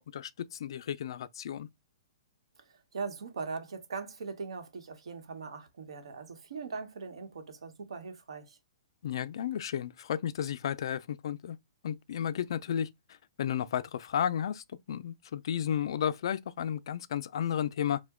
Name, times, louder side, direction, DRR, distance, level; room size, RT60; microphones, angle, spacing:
voice 1, 0.0-1.7 9.0-11.6 11.8-18.0, left 9 dB, 65° left, 0.3 m, -33 dB
voice 2, 2.7-8.6, right 5 dB, 90° right, 1.0 m, -40 dB
2.9 x 2.1 x 3.5 m
hypercardioid pair, 160°, 3 cm